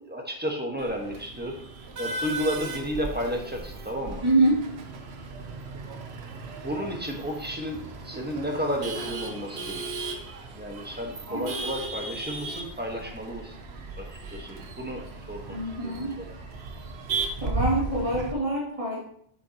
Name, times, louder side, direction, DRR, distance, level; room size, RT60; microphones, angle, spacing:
voice 1, 0.0-1.6 2.0-4.2 6.6-10.1 10.5-13.5 14.0-16.3, equal, 10° right, 1 dB, 1.2 m, -33 dB
Male speech man speaking / Laughter / Chatter, 0.8-18.3, right 3 dB, 85° right, 1.1 m, -36 dB
voice 2, 4.2-4.6 11.3-11.5 15.5-16.1 17.4-19.0, right 1 dB, 35° right, -6 dB, 2.6 m, -25 dB
8.3 x 6.9 x 2.9 m, 0.66 s
omnidirectional pair, 1.0 m